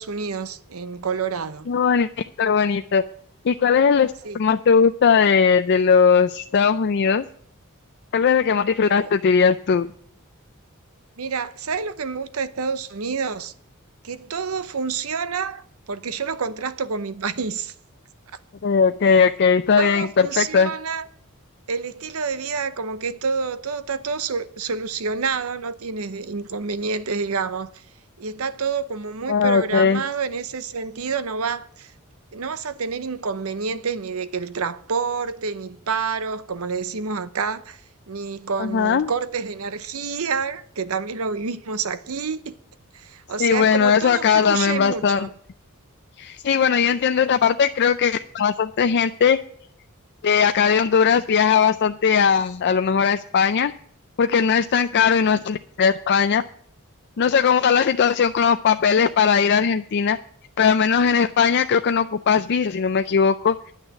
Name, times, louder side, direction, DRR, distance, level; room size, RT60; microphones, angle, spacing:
voice 1, 0.0-1.7 4.2-4.4 9.0-9.1 11.2-13.5 14.0-17.7 19.8-21.1 21.7-27.8 28.2-31.9 32.3-37.8 38.1-42.5 42.9-45.3, right 5 dB, 75° right, 0.8 m, -28 dB
voice 2, 1.7-3.0 3.4-7.2 8.1-9.9 18.6-20.7 29.3-30.0 38.6-39.1 43.4-45.3 46.2-49.4 50.2-53.7 54.2-56.4 57.2-60.2 60.6-63.7, left 6 dB, 50° left, 0.4 m, -19 dB
10.5 x 6.4 x 8.9 m
head